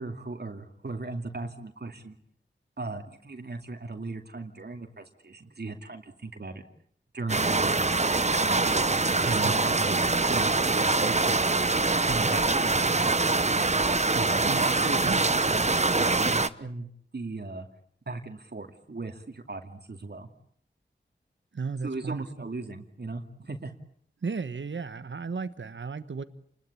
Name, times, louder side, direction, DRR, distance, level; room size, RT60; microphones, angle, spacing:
voice 1, 0.0-2.2 2.8-6.6 7.1-8.9 9.2-11.4 12.0-13.7 14.1-16.9 17.1-17.7 18.1-20.3 21.8-23.7, right 3 dB, 60° right, 4 dB, 2.5 m, -37 dB
sound 1, 7.3-16.5, right 3 dB, 35° right, 1.1 m, -24 dB
voice 2, 14.4-15.2 21.5-22.5 24.2-26.2, right 4 dB, 75° right, 12 dB, 1.3 m, -35 dB
29.5 x 21.0 x 8.6 m, 0.64 s
wide cardioid pair, 60°, 19 cm